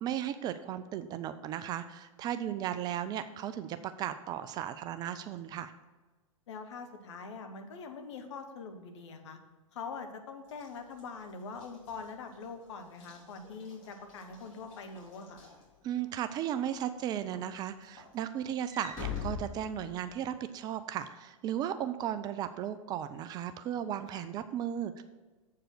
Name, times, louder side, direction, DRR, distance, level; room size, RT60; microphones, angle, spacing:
voice 1, 0.0-5.7 15.8-25.0, right 10 dB, 25° right, 11 dB, 0.3 m, -35 dB
voice 2, 6.5-9.4 9.7-15.4 24.1-24.3, left 4 dB, 60° left, 6 dB, 1.1 m, -43 dB
Walk footsteps / Slam, 10.5-16.2 16.7-17.0 17.3-20.3, left 6 dB, 40° left, 2.9 m, -45 dB
7.6 x 4.7 x 6.2 m, 1.3 s
figure-of-eight pair, 100°, 17 cm